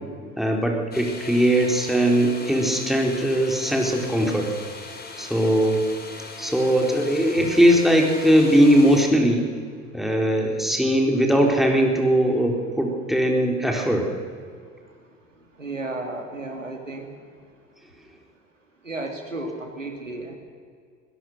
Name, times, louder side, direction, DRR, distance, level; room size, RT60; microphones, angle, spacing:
voice 1, 0.4-4.5 5.2-5.8 6.4-9.4 9.9-14.1, equal, ahead, 1 dB, 4.2 m, -20 dB
sound 1, 0.9-9.0, left 3 dB, 25° left, 3.9 m, -39 dB
voice 2, 15.6-17.1 18.8-20.4, right 2 dB, 90° right, 4 dB, 2.4 m, -33 dB
24.0 x 17.0 x 6.7 m, 2.1 s
figure-of-eight pair, 60°, 37 cm